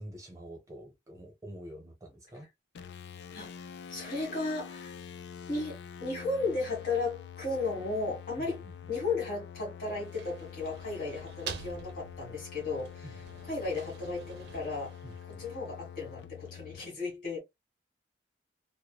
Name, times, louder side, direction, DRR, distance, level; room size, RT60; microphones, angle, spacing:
voice 1, 0.0-2.5 8.6-8.7 13.0-13.2 15.0-15.5, equal, 20° right, 0.7 m, -47 dB
sound 1, 2.7-16.9, left 8 dB, 65° left, 0.3 m, -46 dB
voice 2, 3.9-4.9 5.5-8.6 8.9-13.2 13.4-14.9 15.4-17.4, left 3 dB, 50° left, 1.6 m, -34 dB
sound 2, 9.8-15.8, right 6 dB, 65° right, 0.5 m, -47 dB
3.0 x 2.0 x 2.2 m
head